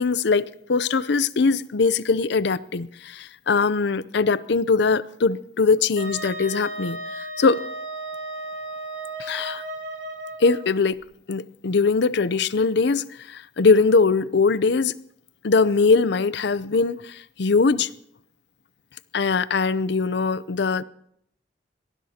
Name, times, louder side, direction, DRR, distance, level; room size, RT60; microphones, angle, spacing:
voice 1, 0.0-7.6 9.2-9.6 10.4-11.0 11.3-14.9 15.4-17.9 19.1-20.8, left 4 dB, 65° left, 0.6 m, -21 dB
Wind instrument woodwind instrument, 6.0-10.6, right 1 dB, 80° right, 4.9 m, -34 dB
23.5 x 18.5 x 2.9 m
head